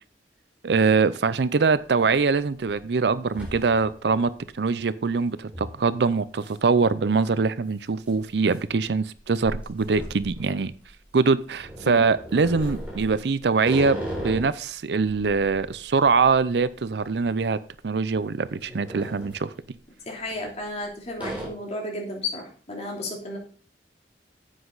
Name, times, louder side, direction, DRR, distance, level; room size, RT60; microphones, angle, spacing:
voice 1, 0.6-10.7 11.1-17.6 17.8-19.5, right 4 dB, 70° right, 0.5 m, -23 dB
sound 1, 2.6-2.8 3.1-4.1 4.5-4.6 5.5-5.8 6.4-6.6 6.9-7.0 7.9-11.0 11.6-14.6 15.0-17.4 17.7-17.9 18.4-19.4 20.3-20.8 21.2-21.5, equal, 10° right, 4.1 m, -37 dB
voice 2, 20.1-23.4, left 2 dB, 40° left, 3.1 m, -33 dB
9.9 x 8.1 x 4.0 m
head